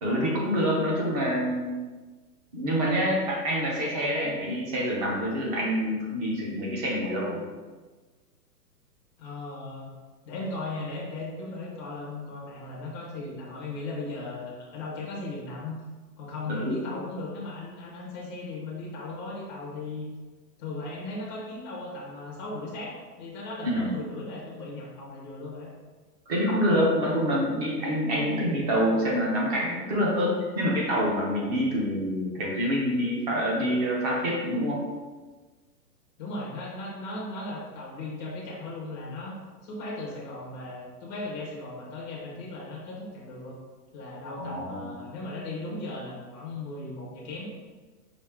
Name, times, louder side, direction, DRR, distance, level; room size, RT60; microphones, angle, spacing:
voice 1, 0.0-1.8 2.5-7.4 16.6-16.9 23.6-23.9 26.3-34.8 44.4-44.9, equal, 25° right, -3 dB, 0.7 m, -26 dB
voice 2, 9.2-9.9 10.2-15.7 16.2-20.1 20.6-25.7 36.2-39.3 39.6-43.6 43.9-47.5, left 2 dB, 15° left, -5 dB, 0.5 m, -37 dB
5.0 x 2.6 x 3.4 m, 1.3 s
hypercardioid pair, 155°, 49 cm